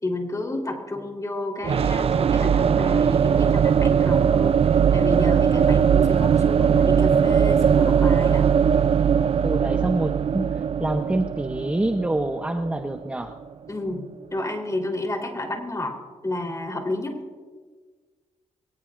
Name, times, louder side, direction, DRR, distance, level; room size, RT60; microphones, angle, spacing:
voice 1, 0.0-8.5 13.7-16.0 16.2-17.2, left 2 dB, 25° left, 1 dB, 3.7 m, -31 dB
sound 1, 1.6-13.4, right 7 dB, 50° right, 0.4 m, -20 dB
voice 2, 9.4-13.4, right 1 dB, 10° right, 6 dB, 0.7 m, -26 dB
22.5 x 19.0 x 2.6 m, 1.5 s
cardioid pair, 75°, 13 cm